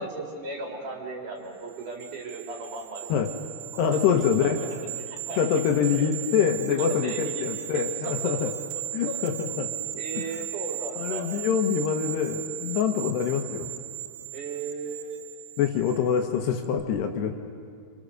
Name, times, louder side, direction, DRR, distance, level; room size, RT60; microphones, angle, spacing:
voice 1, 0.0-3.1 4.1-4.5 5.0-5.5 6.0-6.1 7.0-7.3 7.7-7.8 9.1-9.2 9.5-9.7 10.0-11.3 14.3-15.2, right 3 dB, 50° right, 0 dB, 3.9 m, -36 dB
sound 1, 1.7-16.3 16.6-16.8, right 12 dB, 80° right, 3.0 m, -36 dB
voice 2, 3.8-4.6 5.4-8.5 8.9-9.7 10.1-10.5 11.0-13.7 15.6-17.3, left 7 dB, 70° left, 4 dB, 3.0 m, -25 dB
28.5 x 26.0 x 6.6 m, 2.3 s
omnidirectional pair, 5.3 m